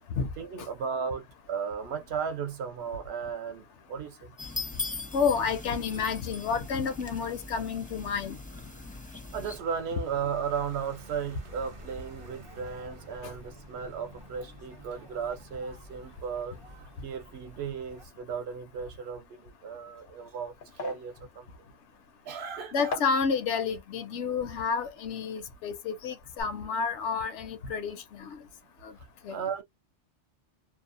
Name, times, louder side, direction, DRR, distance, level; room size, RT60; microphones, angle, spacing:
voice 1, 0.4-4.3 9.3-16.5 17.0-21.5 22.3-23.0 29.3-29.6, right 6 dB, 65° right, 0.9 m, -35 dB
sound 1, 4.4-9.6, left 3 dB, 10° left, 0.4 m, -40 dB
voice 2, 5.1-8.4 13.2-13.3 22.7-28.4 28.8-28.9 29.2-29.4, left 5 dB, 85° left, 1.0 m, -30 dB
sound 2, 9.5-18.1, right 1 dB, 40° right, 0.5 m, -49 dB
sound 3, 19.9-25.9 26.1-26.4, left 3 dB, 60° left, 0.6 m, -43 dB
2.6 x 2.1 x 2.5 m
omnidirectional pair, 1.2 m